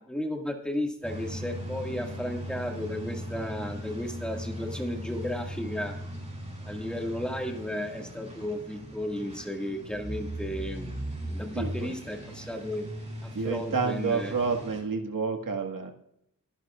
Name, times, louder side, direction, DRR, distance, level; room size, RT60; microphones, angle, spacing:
voice 1, 0.0-6.0 6.6-10.9 11.3-12.9 13.2-14.3, left 1 dB, 5° left, 1 dB, 1.9 m, -34 dB
sound 1, 1.0-14.8, equal, 20° right, 4.4 m, -38 dB
voice 2, 11.5-11.9 13.3-15.9, right 5 dB, 70° right, 3 dB, 1.8 m, -29 dB
22.0 x 10.5 x 2.4 m, 0.74 s
wide cardioid pair, 140°, 35 cm